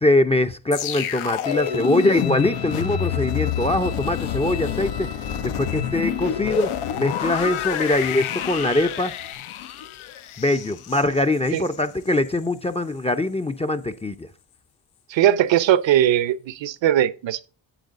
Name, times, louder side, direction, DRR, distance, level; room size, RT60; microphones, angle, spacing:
voice 1, 0.0-5.1 5.4-9.1 10.4-14.1, left 1 dB, 15° left, 0.6 m, -22 dB
sound 1, 0.7-11.8 12.1-12.4, left 10 dB, 75° left, 0.9 m, -28 dB
sound 2, 1.4-9.3, left 5 dB, 60° left, 1.5 m, -39 dB
voice 2, 15.1-17.5, right 11 dB, 60° right, 0.9 m, -19 dB
9.2 x 7.2 x 3.7 m
cardioid pair, 85°, 49 cm